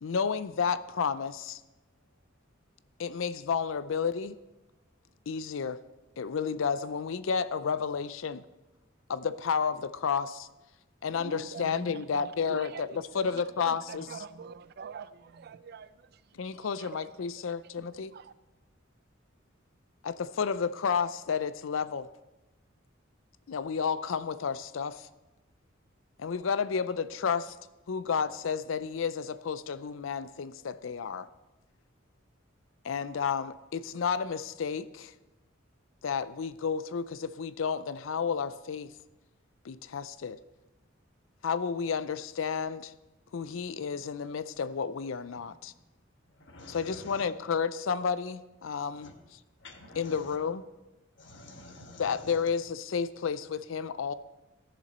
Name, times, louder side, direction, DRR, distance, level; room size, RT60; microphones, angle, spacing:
voice 1, 0.0-1.6 3.0-4.4 5.3-5.8 6.2-8.5 9.1-10.5 11.0-12.9 13.1-14.0 16.3-18.1 20.0-22.1 23.5-25.1 26.2-27.6 27.9-31.3 32.8-35.1 36.0-38.9 39.6-40.4 41.4-42.9 43.3-45.7 46.7-49.1 50.0-50.6 52.0-54.1, left 6 dB, 80° left, 0.5 m, -31 dB
voice 2, 11.1-17.5 17.8-18.3, right 6 dB, 55° right, 0.4 m, -45 dB
voice 3, 45.4-45.8 46.2-47.3 48.7-49.1 49.6-50.4 51.1-52.5, left 1 dB, 65° left, 1.4 m, -49 dB
14.5 x 6.9 x 4.3 m
head